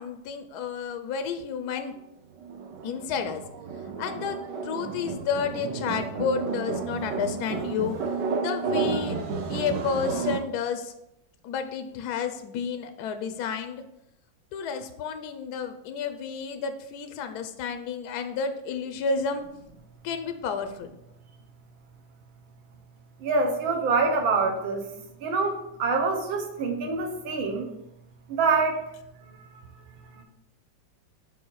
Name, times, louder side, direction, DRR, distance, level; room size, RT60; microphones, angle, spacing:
voice 1, 0.0-1.9 2.8-3.4 4.0-4.4 4.6-8.0 8.4-9.2 9.5-10.9 11.4-13.8 14.5-19.4 20.0-20.9, left 6 dB, 70° left, 8 dB, 0.9 m, -31 dB
sound 1, 2.4-10.4, right 5 dB, 70° right, 1.3 m, -31 dB
voice 2, 23.2-24.8 25.2-25.5 25.8-27.6 28.4-28.8, right 4 dB, 85° right, 4 dB, 1.7 m, -25 dB
5.5 x 4.6 x 4.6 m, 0.84 s
omnidirectional pair, 2.1 m